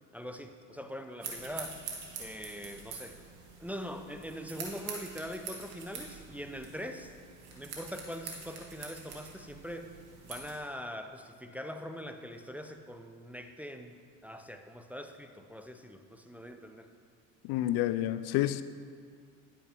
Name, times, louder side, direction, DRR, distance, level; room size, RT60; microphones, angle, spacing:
voice 1, 0.1-1.8 2.2-3.2 3.6-7.1 7.6-9.9 10.2-16.9, equal, 5° right, 6 dB, 0.5 m, -42 dB
sound 1, 1.2-10.6, right 5 dB, 65° right, 1.9 m, -45 dB
voice 2, 17.4-18.6, left 14 dB, 70° left, 14 dB, 0.5 m, -29 dB
10.0 x 9.2 x 3.4 m, 2.1 s
supercardioid pair, 75°, 40 cm